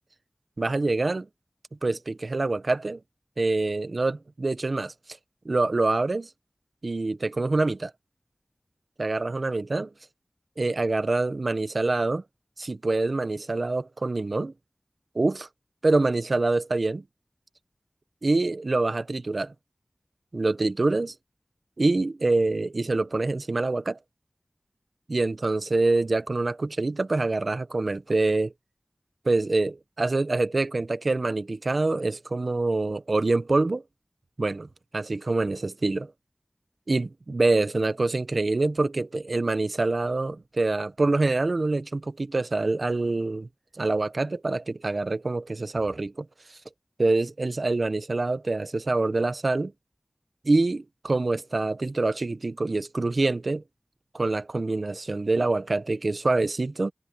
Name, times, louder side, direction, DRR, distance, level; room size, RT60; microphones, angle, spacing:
voice 1, 0.6-1.3 1.8-3.0 3.4-4.9 5.4-6.3 6.8-7.9 9.0-9.9 10.6-12.2 12.6-14.5 15.1-15.5 15.8-17.0 18.2-19.5 20.3-21.1 21.8-24.0 25.1-28.5 29.2-33.8 34.4-34.7 34.9-36.1 36.9-43.5 43.8-46.3 47.0-49.7 50.4-53.6 54.1-56.9, right 2 dB, 70° right, 0.9 m, -25 dB
wide cardioid pair, 45°, 0 cm